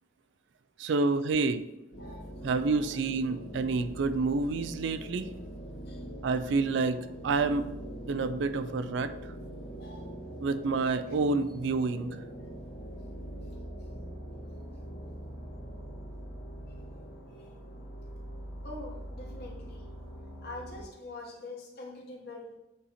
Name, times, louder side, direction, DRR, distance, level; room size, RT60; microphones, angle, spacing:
voice 1, 0.8-1.7 2.4-5.3 6.2-7.7 8.1-9.1 10.4-12.2, right 3 dB, 60° right, 12 dB, 0.3 m, -28 dB
sound 1, 1.9-20.8, right 1 dB, 80° left, 1.8 m, -43 dB
voice 2, 18.6-19.8 20.4-22.5, left 2 dB, 50° left, -1 dB, 1.3 m, -44 dB
8.2 x 2.8 x 4.2 m, 0.96 s
head